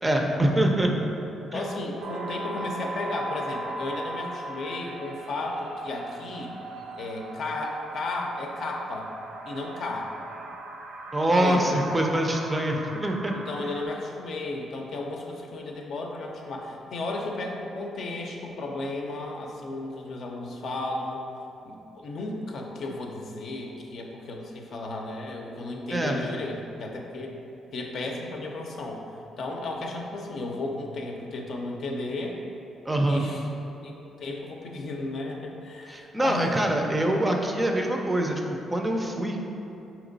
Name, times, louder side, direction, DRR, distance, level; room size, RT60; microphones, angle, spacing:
voice 1, 0.0-1.0 1.5-1.6 11.1-13.4 25.9-26.2 32.9-33.3 35.9-39.4, right 1 dB, 20° right, 2 dB, 0.4 m, -25 dB
voice 2, 0.5-1.1 1.5-6.6 7.0-9.1 9.4-10.1 11.3-11.8 13.3-21.2 21.6-27.4 27.7-29.0 29.4-32.4 33.1-33.5 33.8-36.5 37.0-37.2, left 2 dB, 60° left, 0 dB, 0.6 m, -34 dB
sound 1, 2.0-13.9, right 2 dB, 80° right, 0.5 m, -38 dB
4.3 x 2.9 x 3.9 m, 2.9 s
cardioid pair, 90°, 0 cm